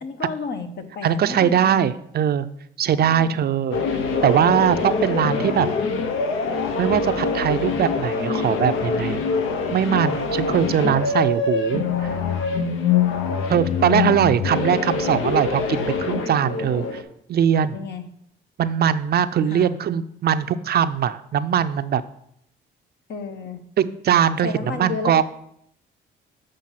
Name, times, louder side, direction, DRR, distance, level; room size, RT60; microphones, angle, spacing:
voice 1, 0.0-1.9 2.9-3.4 17.7-18.0 19.5-19.8 23.1-23.6 24.4-25.2, left 4 dB, 60° left, 7 dB, 1.0 m, -32 dB
voice 2, 1.0-2.5 2.8-3.8 4.2-5.7 6.8-9.2 9.7-12.1 13.5-17.0 17.3-17.7 18.6-22.0 23.8-25.2, right 9 dB, 55° right, 12 dB, 0.5 m, -21 dB
sound 1, 3.7-17.0, left 5 dB, 85° left, 0.9 m, -24 dB
7.6 x 5.1 x 5.7 m, 0.73 s
cardioid pair, 90°, 20 cm